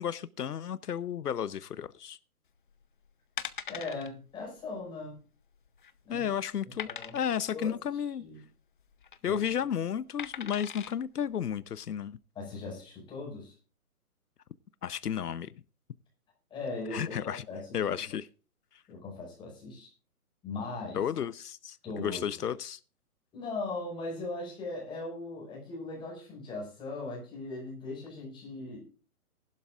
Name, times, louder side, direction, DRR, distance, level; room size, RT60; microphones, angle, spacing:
voice 1, 0.0-2.2 6.1-6.9 7.1-8.2 9.2-12.2 14.8-15.5 16.9-17.5 17.7-18.3 20.9-22.8, left 8 dB, 85° left, 0.9 m, -33 dB
sound 1, 2.7-2.9 3.4-4.1 4.4-4.6 4.9-5.0 5.5-6.0 6.8-7.5 8.8-9.2 10.2-10.9 11.5-11.6, left 8 dB, 35° left, 0.7 m, -40 dB
voice 2, 3.7-5.2 6.0-6.2 6.8-7.2 7.5-8.4 9.2-9.4 12.4-13.5 16.5-17.8 18.9-19.9 20.4-21.0 21.8-22.3 23.3-29.0, left 3 dB, 10° left, 5.4 m, -39 dB
19.0 x 12.0 x 2.4 m
hypercardioid pair, 160°, 45 cm